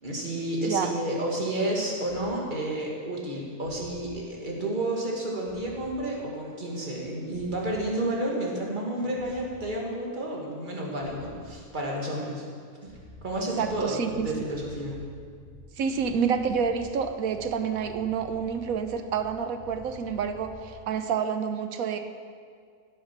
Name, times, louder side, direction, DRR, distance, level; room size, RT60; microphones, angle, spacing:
voice 1, 0.0-12.5 12.8-12.9 13.2-14.9, right 1 dB, 35° right, -2 dB, 2.3 m, -31 dB
sound 1, 2.1-2.3 3.6-4.1 5.5-5.9 7.3-7.9 9.2-9.6 11.0-11.5 12.8-20.7, left 1 dB, 55° right, 2.2 m, -49 dB
voice 2, 13.6-14.4 15.8-22.0, right 6 dB, 75° right, 8 dB, 1.3 m, -28 dB
17.5 x 7.1 x 6.0 m, 2.1 s
omnidirectional pair, 1.5 m